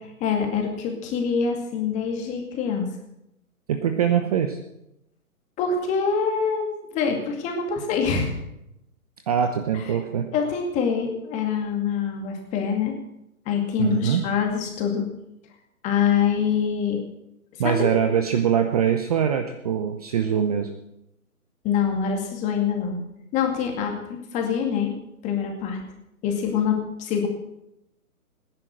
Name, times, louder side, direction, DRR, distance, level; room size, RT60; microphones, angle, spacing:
voice 1, 0.2-2.9 5.6-8.3 10.3-12.9 13.5-15.1 15.8-17.0 17.6-17.8 21.6-23.0 23.3-24.9 25.2-25.8 26.2-27.3, left 7 dB, 15° left, 3 dB, 2.3 m, -25 dB
voice 2, 3.7-4.6 9.3-10.3 13.8-14.2 17.6-20.7, right 8 dB, 25° right, 6 dB, 0.9 m, -23 dB
18.5 x 10.5 x 6.6 m, 0.84 s
figure-of-eight pair, 145°, 45 cm